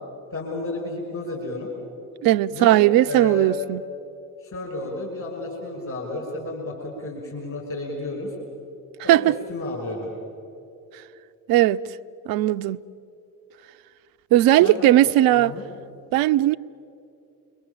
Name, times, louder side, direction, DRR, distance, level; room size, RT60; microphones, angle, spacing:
voice 1, 0.3-1.7 2.5-3.6 4.4-8.3 9.0-10.1 14.6-15.6, left 2 dB, 40° left, 6.1 m, -32 dB
voice 2, 2.2-3.8 9.1-9.4 11.5-11.8 12.3-12.8 14.3-15.5 16.1-16.6, right 14 dB, 55° right, 0.6 m, -17 dB
29.5 x 22.5 x 7.2 m
figure-of-eight pair, 45°, 44 cm